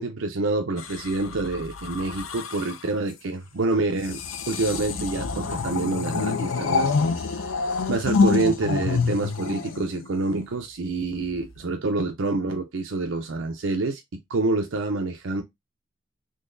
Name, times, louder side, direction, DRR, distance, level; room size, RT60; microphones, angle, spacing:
voice 1, 0.0-4.2 4.5-6.9 7.2-7.3 7.9-15.4, right 3 dB, 75° right, 0.6 m, -27 dB
sound 1, 0.8-2.9 3.9-10.4 11.3-11.6, left 4 dB, 75° left, 0.6 m, -27 dB
3.8 x 3.0 x 2.5 m
head